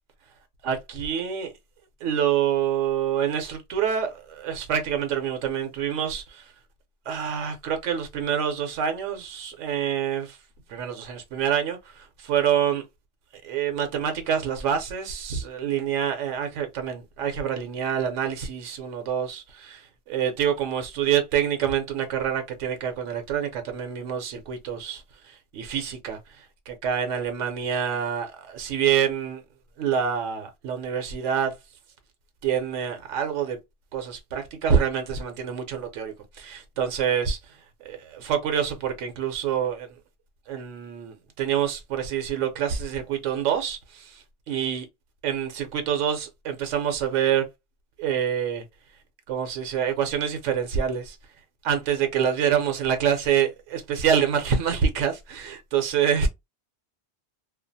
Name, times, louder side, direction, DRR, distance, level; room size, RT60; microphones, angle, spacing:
voice 1, 0.6-1.5 2.0-6.4 7.1-10.4 10.7-12.8 13.4-29.4 29.8-31.5 32.4-33.6 33.9-37.4 37.8-39.9 40.5-44.8 45.2-47.4 48.0-48.6 49.3-51.2 51.6-56.3, right 8 dB, 90° right, 1.0 m, -26 dB
2.4 x 2.2 x 2.6 m
omnidirectional pair, 1.2 m